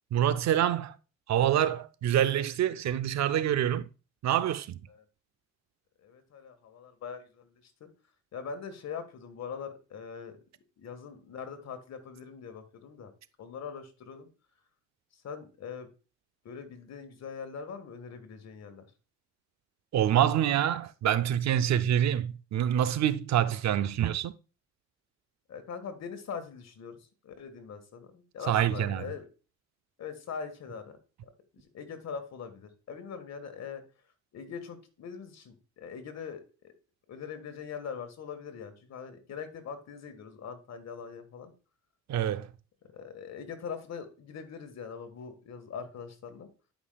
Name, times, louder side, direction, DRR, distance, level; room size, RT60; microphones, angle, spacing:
voice 1, 0.1-1.0 1.3-3.9 4.2-4.8 19.9-24.3 28.4-29.1 42.1-42.5, right 10 dB, 65° right, 0.6 m, -26 dB
voice 2, 6.0-7.9 8.3-10.4 10.8-13.1 13.4-14.3 15.1-15.9 16.4-18.8 25.5-27.0 27.2-29.2 30.0-31.0 31.5-33.8 34.3-36.7 37.1-41.5 42.9-46.5, left 6 dB, 60° left, 1.6 m, -42 dB
11.5 x 5.4 x 2.3 m
cardioid pair, 90°, 30 cm